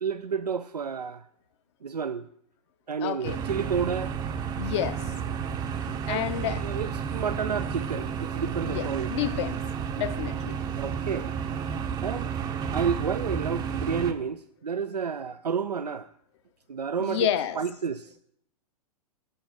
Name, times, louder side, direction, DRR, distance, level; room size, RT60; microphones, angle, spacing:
voice 1, 0.0-1.2 1.8-2.3 2.9-4.1 6.1-9.1 10.8-11.3 12.0-12.3 12.7-16.1 16.7-17.3 17.6-18.1, right 6 dB, 85° right, 0.4 m, -30 dB
voice 2, 3.0-3.4 4.6-5.0 6.1-6.6 8.6-9.6 10.0-10.6 17.0-17.6, left 10 dB, 45° left, 0.7 m, -29 dB
sound 1, 3.2-14.1, right 7 dB, 20° right, 0.6 m, -31 dB
7.1 x 5.5 x 6.9 m
figure-of-eight pair, 110°, 20 cm